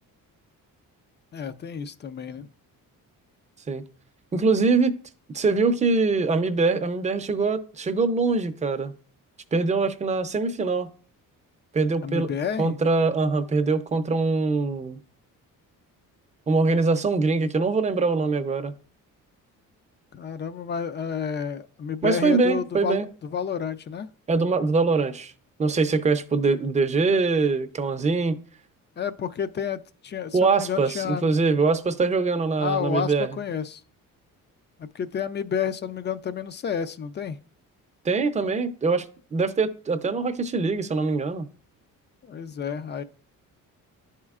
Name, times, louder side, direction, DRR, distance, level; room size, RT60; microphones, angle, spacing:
voice 1, 1.3-2.5 12.0-12.8 20.1-24.1 29.0-31.4 32.6-33.8 34.8-37.4 42.2-43.0, left 7 dB, 35° left, 0.4 m, -30 dB
voice 2, 4.3-4.9 5.3-8.9 9.5-10.9 11.7-12.3 12.6-15.0 16.5-18.7 22.0-23.1 24.3-25.3 25.6-28.4 30.3-33.3 38.0-41.5, right 4 dB, 20° right, 0.5 m, -23 dB
11.5 x 4.3 x 2.4 m
cardioid pair, 130°, 34 cm